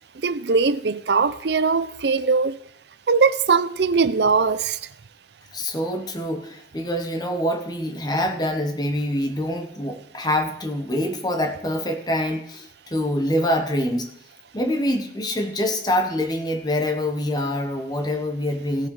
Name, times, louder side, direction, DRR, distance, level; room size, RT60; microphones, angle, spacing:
voice 1, 0.2-2.6 3.1-4.8, right 4 dB, 70° right, 0.6 m, -20 dB
voice 2, 5.5-14.1 14.5-18.9, left 1 dB, 20° left, 1.3 m, -25 dB
17.0 x 6.4 x 4.8 m
head